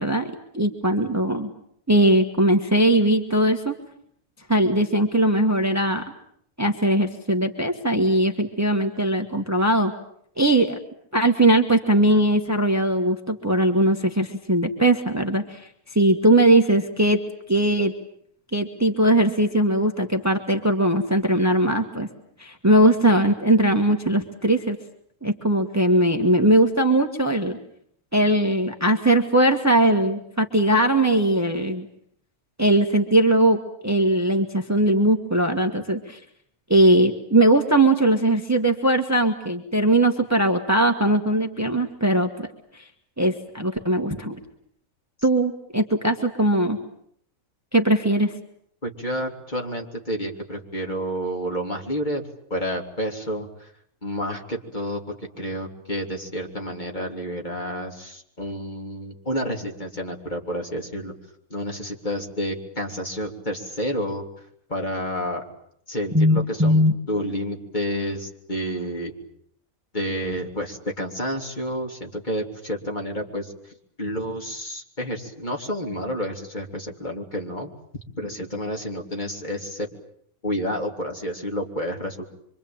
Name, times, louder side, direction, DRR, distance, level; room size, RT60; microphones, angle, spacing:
voice 1, 0.0-1.5 1.9-3.7 4.5-6.0 6.6-9.9 10.4-10.8 11.1-17.2 17.5-17.9 18.5-22.1 22.4-24.8 25.2-27.6 28.1-31.9 32.6-36.2 36.7-42.5 42.7-42.9 43.2-44.4 45.2-46.8 47.7-48.3 66.1-66.9, right 1 dB, 10° right, 5 dB, 1.7 m, -20 dB
voice 2, 48.8-52.2 52.5-53.7 54.0-61.1 61.5-64.2 64.7-65.4 65.9-69.1 69.9-73.5 74.0-77.7 78.2-79.9 80.4-82.2, equal, 30° left, 1 dB, 3.6 m, -30 dB
25.5 x 25.5 x 8.8 m, 0.67 s
omnidirectional pair, 1.4 m